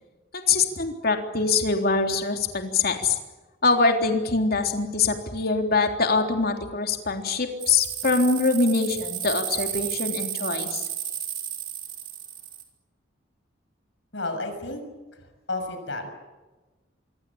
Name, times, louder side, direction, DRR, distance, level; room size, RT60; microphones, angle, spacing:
voice 1, 0.3-3.2 3.6-10.9, left 4 dB, 55° left, 4 dB, 3.6 m, -23 dB
sound 1, 7.6-12.6, right 10 dB, 50° right, 5.2 m, -33 dB
voice 2, 14.1-14.8 15.5-16.1, left 2 dB, 70° left, 6 dB, 6.8 m, -31 dB
26.5 x 24.5 x 8.7 m, 1.2 s
head